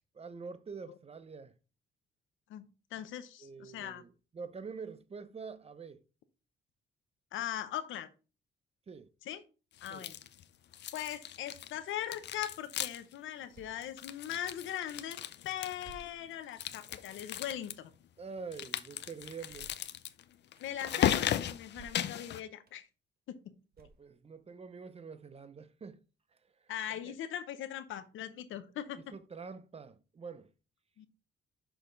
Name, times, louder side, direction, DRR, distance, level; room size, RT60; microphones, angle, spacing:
voice 1, 0.1-1.5 3.4-6.0 8.9-9.1 9.9-10.1 18.2-19.7 20.9-21.1 23.8-26.0 27.0-27.1 29.1-30.5, right 5 dB, 30° right, 0.8 m, -46 dB
voice 2, 2.9-4.0 7.3-8.1 9.2-9.4 9.8-10.2 10.9-17.9 20.6-22.9 23.3-23.5 26.7-29.0 31.0-31.1, left 11 dB, 80° left, 0.9 m, -40 dB
sound 1, 9.8-10.4 10.7-11.8 12.0-13.2 13.4-13.5 13.8-16.0 16.5-17.7 18.5-22.4, left 11 dB, 60° left, 0.5 m, -36 dB
sound 2, 13.5-13.9 14.7-14.8 15.8-16.5 17.1-17.3 19.4-19.9 20.6-20.7 21.7-22.2 22.7-22.8 23.7-24.3, right 7 dB, 50° right, 1.1 m, -56 dB
6.2 x 5.2 x 3.9 m
cardioid pair, 90°, 20 cm